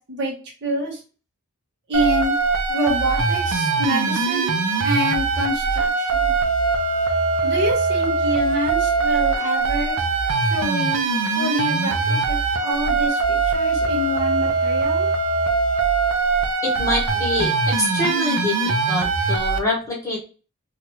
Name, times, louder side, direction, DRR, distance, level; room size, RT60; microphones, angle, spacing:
voice 1, 0.6-1.0 1.9-2.3 2.7-6.4 7.4-10.0 10.4-11.1 11.4-15.1, equal, 50° right, -1 dB, 0.9 m, -26 dB
sound 1, 1.9-19.6, right 4 dB, 75° right, 0.6 m, -21 dB
voice 2, 16.6-17.5 17.8-18.5 18.9-20.2, left 2 dB, 15° left, -3 dB, 0.9 m, -25 dB
2.9 x 2.4 x 2.9 m, 0.36 s
head